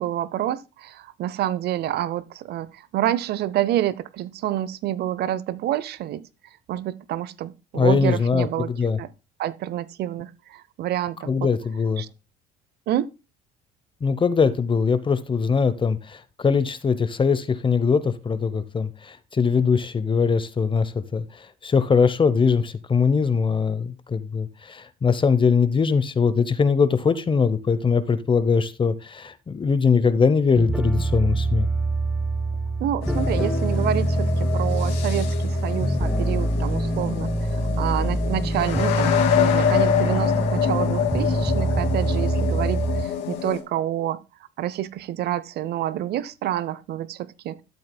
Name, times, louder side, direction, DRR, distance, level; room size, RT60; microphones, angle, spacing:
voice 1, 0.0-6.2 6.7-9.1 9.4-11.5 12.0-12.1 12.9-13.1 32.8-44.2 44.6-47.6, right 12 dB, 60° right, 0.7 m, -28 dB
voice 2, 7.7-9.0 11.3-12.0 14.0-21.2 21.6-31.7, left 5 dB, 25° left, 0.8 m, -21 dB
sound 1, 30.5-43.1, right 1 dB, 5° right, 1.0 m, -24 dB
sound 2, 33.0-43.6, left 9 dB, 80° left, 2.3 m, -27 dB
12.5 x 7.8 x 2.2 m
supercardioid pair, 80°, 19 cm